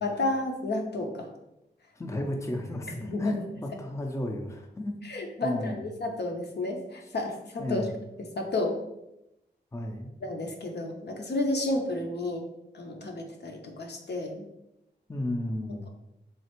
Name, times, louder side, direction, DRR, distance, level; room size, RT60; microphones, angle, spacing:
voice 1, 0.0-1.3 2.1-2.2 3.0-3.4 5.0-7.8 8.4-8.8 10.2-12.4 12.7-14.4, left 2 dB, 65° left, 2 dB, 0.6 m, -31 dB
voice 2, 2.0-5.0 5.4-5.8 7.6-7.9 9.7-10.2 15.1-15.9, left 1 dB, 15° left, 2 dB, 0.5 m, -33 dB
3.2 x 2.4 x 2.9 m, 0.87 s
cardioid pair, 40°, 19 cm